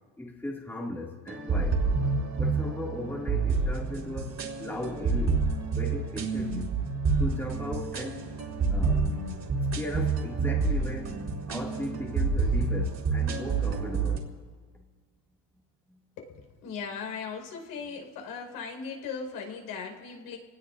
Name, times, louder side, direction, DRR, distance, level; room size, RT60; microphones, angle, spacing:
voice 1, 0.2-1.9 2.4-6.7 7.2-8.2 8.7-9.1 9.7-11.2 11.5-14.4 14.7-14.8 15.9-16.0, left 1 dB, 5° left, 2.6 m, -37 dB
sound 1, 1.3-14.2, right 4 dB, 40° right, 4.0 m, -28 dB
voice 2, 16.2-20.4, left 5 dB, 65° left, 5.6 m, -38 dB
26.5 x 19.0 x 2.7 m
supercardioid pair, 100°, 39 cm